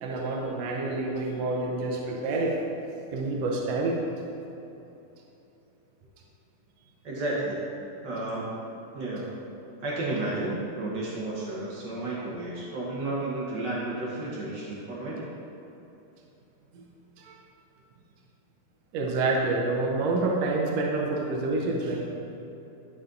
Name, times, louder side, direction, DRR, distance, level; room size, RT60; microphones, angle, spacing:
voice 1, 0.0-2.6 3.1-4.0 16.7-16.8 17.2-17.3 18.9-22.1, right 2 dB, 75° right, -1 dB, 1.5 m, -28 dB
voice 2, 7.0-7.6 8.0-8.5 8.9-9.3 9.8-15.3, right 2 dB, 90° right, -6 dB, 0.9 m, -32 dB
12.0 x 4.2 x 3.8 m, 2.9 s
omnidirectional pair, 3.8 m